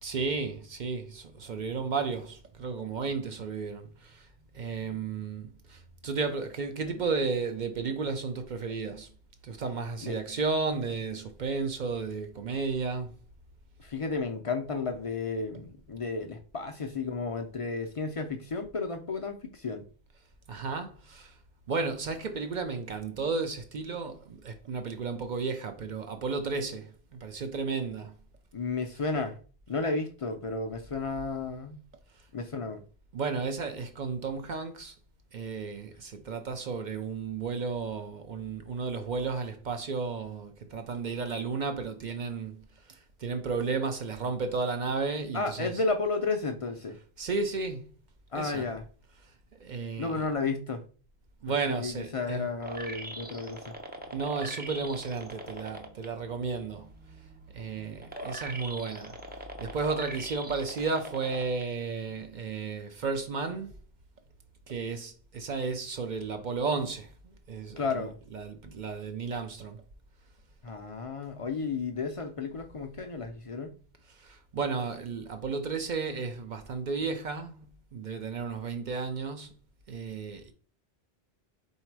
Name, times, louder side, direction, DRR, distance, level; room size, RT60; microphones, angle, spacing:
voice 1, 0.0-4.3 4.5-9.1 9.4-13.2 20.5-21.3 21.7-28.1 33.1-34.9 35.3-45.7 47.2-47.9 48.3-48.6 49.6-50.3 51.4-52.5 54.1-56.9 57.5-59.2 59.6-63.8 64.7-67.1 67.5-69.8 74.1-77.7 77.9-79.5 79.9-80.5, right 4 dB, 55° right, 0.6 m, -33 dB
voice 2, 13.8-19.8 28.5-29.4 29.7-31.8 32.3-32.8 45.3-47.0 48.3-48.8 50.0-50.8 51.7-53.7 67.8-68.2 70.6-73.7, left 4 dB, 45° left, 0.4 m, -32 dB
sound 1, 52.6-56.1 56.5-61.6 62.1-62.2, right 1 dB, 15° right, 0.4 m, -41 dB
4.0 x 2.7 x 4.5 m
omnidirectional pair, 1.1 m